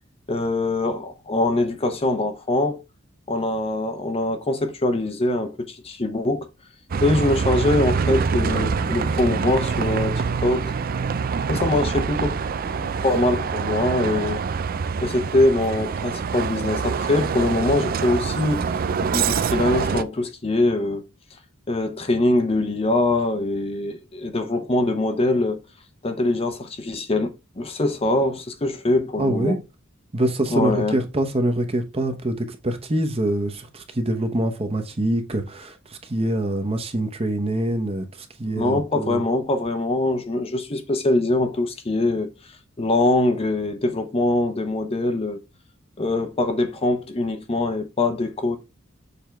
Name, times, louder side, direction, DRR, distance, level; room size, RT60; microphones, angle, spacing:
voice 1, 0.3-2.8 3.3-6.5 7.0-10.7 11.5-12.4 12.8-14.4 15.0-18.6 19.1-21.0 21.7-25.6 26.0-29.6 30.5-31.0 38.6-42.3 42.8-45.4 46.0-48.6, left 2 dB, 30° left, 0.7 m, -23 dB
Bus, 6.9-20.0, right 5 dB, 45° right, 0.4 m, -25 dB
voice 2, 29.2-29.6 30.1-39.2, right 1 dB, 30° right, 1.0 m, -25 dB
6.9 x 3.6 x 4.5 m
head